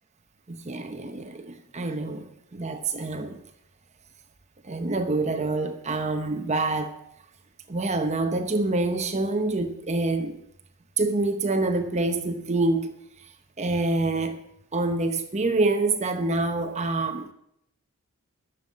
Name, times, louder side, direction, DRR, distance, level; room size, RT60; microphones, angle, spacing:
voice 1, 0.5-3.4 4.6-6.9 7.7-10.4 11.0-12.9 13.6-14.4 14.7-17.3, right 2 dB, 30° right, 0.9 m, -26 dB
11.0 x 7.3 x 9.2 m
head